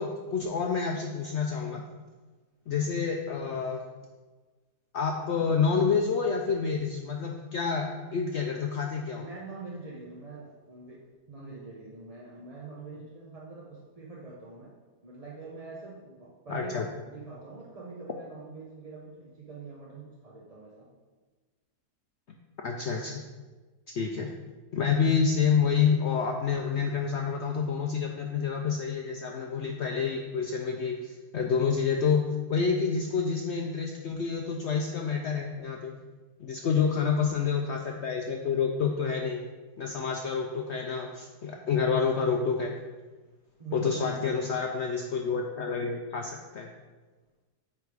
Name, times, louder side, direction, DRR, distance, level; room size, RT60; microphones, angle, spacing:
voice 1, 0.0-1.8 2.7-3.8 4.9-9.2 16.5-16.9 22.6-23.2 23.9-24.3 24.7-32.2 32.5-36.0 36.4-39.4 39.8-42.7 43.7-46.7, left 6 dB, 75° left, 2 dB, 0.6 m, -28 dB
voice 2, 9.2-14.8 15.0-20.9 43.6-44.5, right 3 dB, 35° right, -4 dB, 0.6 m, -44 dB
8.6 x 3.4 x 4.8 m, 1.3 s
omnidirectional pair, 1.7 m